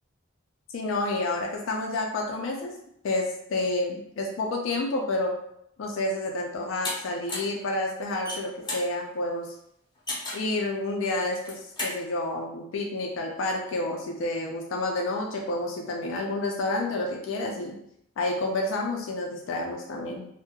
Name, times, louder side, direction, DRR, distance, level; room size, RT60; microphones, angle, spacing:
voice 1, 0.7-2.7 3.0-5.4 5.8-9.5 10.3-17.8 18.2-20.3, left 2 dB, 90° left, 1 dB, 0.4 m, -29 dB
sound 1, 6.8-7.0 7.3-7.6 8.1-8.9 10.1-10.5 11.3-12.0, left 2 dB, 25° left, 0.6 m, -33 dB
2.2 x 2.0 x 2.8 m, 0.73 s
head